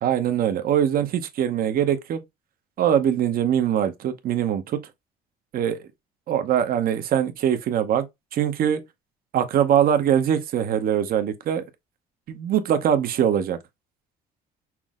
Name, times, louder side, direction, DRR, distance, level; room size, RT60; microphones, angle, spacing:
voice 1, 0.0-2.2 2.8-4.8 5.5-5.8 6.3-8.1 8.3-8.8 9.3-11.6 12.3-13.6, right 9 dB, 60° right, 0.9 m, -22 dB
6.0 x 2.0 x 3.6 m
cardioid pair, 110°, 17 cm